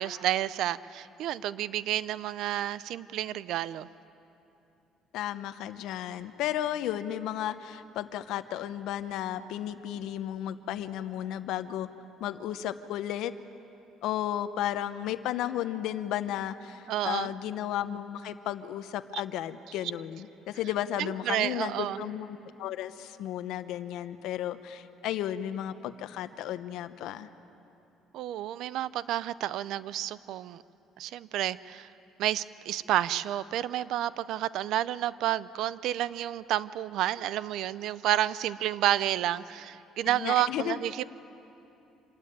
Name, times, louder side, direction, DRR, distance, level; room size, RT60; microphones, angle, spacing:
voice 1, 0.0-3.9 16.9-17.3 21.0-22.0 28.1-30.6 31.0-31.9 32.2-41.0, right 12 dB, 70° right, 18 dB, 0.5 m, -30 dB
voice 2, 5.1-11.9 12.2-13.3 14.0-27.3 40.1-40.8, left 11 dB, 75° left, 12 dB, 0.8 m, -34 dB
26.5 x 13.0 x 9.4 m, 2.9 s
cardioid pair, 130°, 0 cm